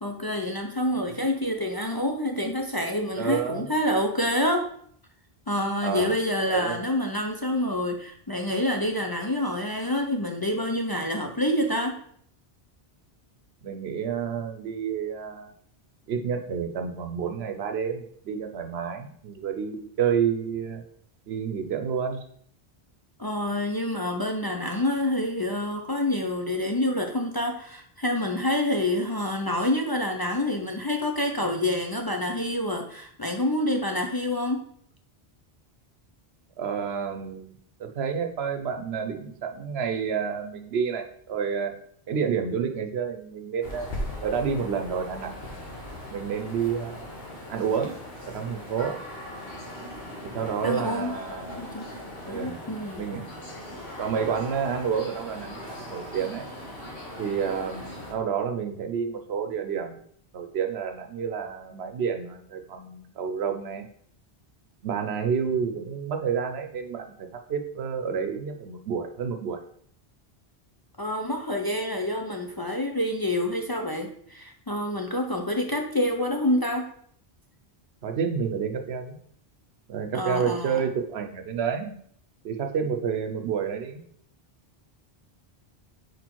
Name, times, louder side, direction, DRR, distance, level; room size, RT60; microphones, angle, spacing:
voice 1, 0.0-4.7 5.5-12.0 23.2-34.6 50.6-51.1 51.6-52.0 52.3-53.0 71.0-76.9 80.1-80.8, left 1 dB, 30° left, 2 dB, 0.5 m, -27 dB
voice 2, 3.2-3.6 5.8-6.1 6.5-6.8 13.6-15.5 16.1-20.8 21.3-22.2 36.6-37.5 37.8-41.7 42.1-43.9 44.2-45.3 46.1-47.1 47.5-48.0 48.3-49.0 50.2-51.6 52.2-52.6 53.0-53.2 54.0-56.5 57.2-60.0 60.3-63.9 64.8-69.6 78.0-79.2 79.9-81.9 82.4-84.0, right 7 dB, 80° right, 6 dB, 1.0 m, -29 dB
sound 1, 43.6-58.1, left 1 dB, 70° left, 1.5 m, -39 dB
4.8 x 4.3 x 4.5 m, 0.63 s
omnidirectional pair, 1.1 m